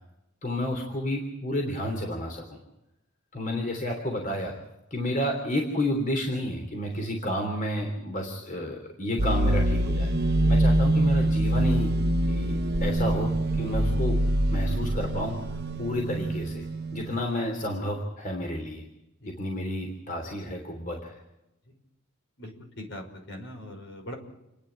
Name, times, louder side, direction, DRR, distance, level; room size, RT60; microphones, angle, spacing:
voice 1, 0.4-2.6 3.3-4.5 4.9-11.9 12.3-14.2 14.5-16.6 16.9-18.8 19.3-21.2, left 1 dB, 40° left, 2 dB, 3.2 m, -31 dB
sound 1, 9.2-17.1, right 1 dB, 55° right, 1.1 m, -25 dB
voice 2, 22.4-24.1, left 1 dB, 60° left, 4 dB, 5.6 m, -41 dB
29.5 x 10.0 x 9.8 m, 0.91 s
head